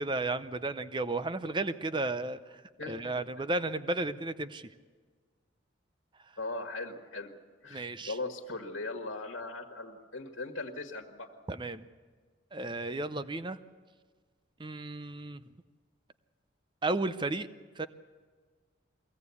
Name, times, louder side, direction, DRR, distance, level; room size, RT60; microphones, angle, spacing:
voice 1, 0.0-2.4 2.9-4.7 7.7-8.1 11.5-11.8 12.5-13.6 14.6-15.4 16.8-17.5 17.8-17.9, right 2 dB, 25° right, 13 dB, 0.6 m, -33 dB
voice 2, 2.8-3.2 6.4-7.3 7.6-11.3, left 2 dB, 85° left, 2 dB, 1.7 m, -39 dB
23.0 x 16.5 x 8.4 m, 1.5 s
head